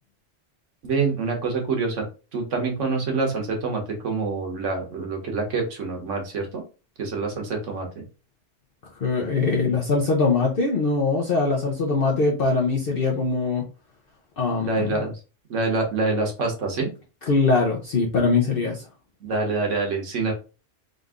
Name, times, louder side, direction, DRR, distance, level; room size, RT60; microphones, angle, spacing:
voice 1, 0.8-2.1 2.3-6.6 7.0-7.9 14.6-15.1 15.5-16.9 19.2-20.3, right 3 dB, 90° right, 2 dB, 1.5 m, -26 dB
voice 2, 9.0-13.6 14.4-15.0 17.3-18.8, left 4 dB, 55° left, -1 dB, 0.9 m, -22 dB
3.9 x 2.5 x 3.5 m, 0.33 s
omnidirectional pair, 1.2 m